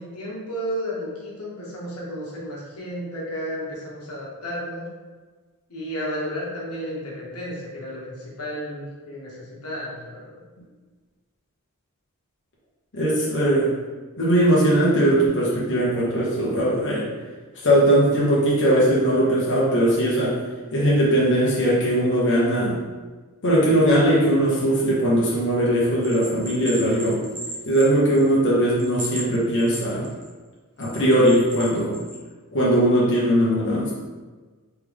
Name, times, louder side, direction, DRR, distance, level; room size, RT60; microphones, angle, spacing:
voice 1, 0.0-4.9 5.7-10.3, equal, 85° left, -5 dB, 1.2 m, -32 dB
voice 2, 12.9-13.7 14.2-17.1 17.6-20.4 20.7-22.8 23.4-27.2 27.7-30.1 30.8-32.0 32.5-33.9, right 1 dB, 55° left, -7 dB, 1.0 m, -19 dB
Bell, 26.0-28.4 28.8-30.3 30.8-32.2, right 1 dB, 70° right, 0.9 m, -36 dB
3.4 x 3.3 x 3.5 m, 1.4 s
head